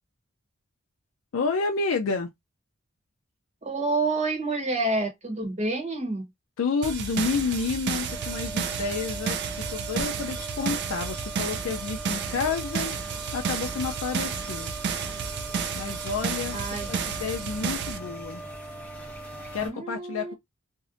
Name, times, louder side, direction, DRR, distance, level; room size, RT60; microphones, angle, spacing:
voice 1, 1.3-2.3 6.6-13.0 13.3-14.7 15.8-18.4 19.5-20.3, left 4 dB, 70° left, 0.4 m, -30 dB
voice 2, 3.6-6.3 16.5-16.9 19.6-20.3, right 2 dB, 35° right, 0.9 m, -28 dB
sound 1, 6.8-18.0, right 6 dB, 55° right, 0.4 m, -32 dB
sound 2, 8.1-19.7, right 2 dB, 5° left, 0.7 m, -40 dB
2.6 x 2.1 x 2.4 m
head